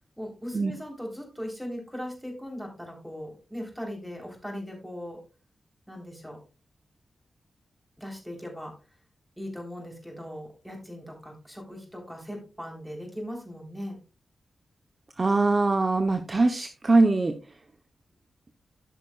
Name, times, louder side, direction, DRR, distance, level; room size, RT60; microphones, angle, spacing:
voice 1, 0.2-5.2 5.9-6.4 8.0-8.7 9.4-14.0, equal, ahead, 1 dB, 3.6 m, -39 dB
voice 2, 15.2-17.4, right 3 dB, 35° right, 5 dB, 0.8 m, -22 dB
14.0 x 6.0 x 2.3 m, 0.31 s
wide cardioid pair, 95°, 0 cm